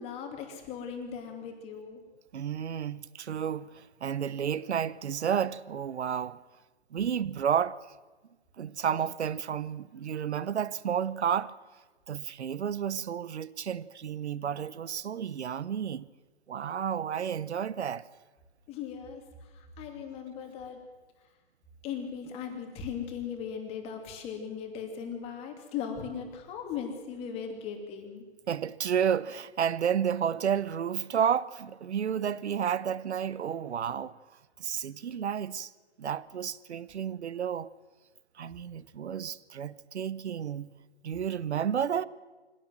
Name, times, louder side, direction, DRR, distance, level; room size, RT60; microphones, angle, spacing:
voice 1, 0.0-2.0 18.7-20.8 21.8-28.3, left 7 dB, 20° left, 2.8 m, -38 dB
voice 2, 2.3-6.4 6.9-7.8 8.6-11.5 12.1-16.1 16.5-18.1 28.5-34.2 34.6-35.7 36.0-37.7 38.4-40.7 41.0-42.0, right 8 dB, 80° right, 1.0 m, -31 dB
23.5 x 17.0 x 7.6 m
hypercardioid pair, 160°, 33 cm